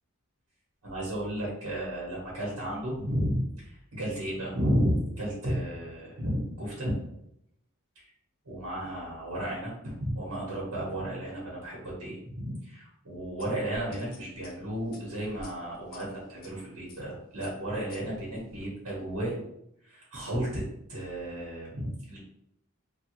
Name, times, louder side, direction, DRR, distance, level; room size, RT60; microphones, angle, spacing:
voice 1, 0.8-6.9 7.9-8.1 8.5-19.4 19.8-20.6 20.9-22.2, equal, 75° right, -5 dB, 1.0 m, -33 dB
sound 1, 13.4-16.5 16.9-17.1 17.4-18.7, left 2 dB, 40° left, 0.5 m, -51 dB
3.0 x 2.2 x 3.0 m, 0.78 s
head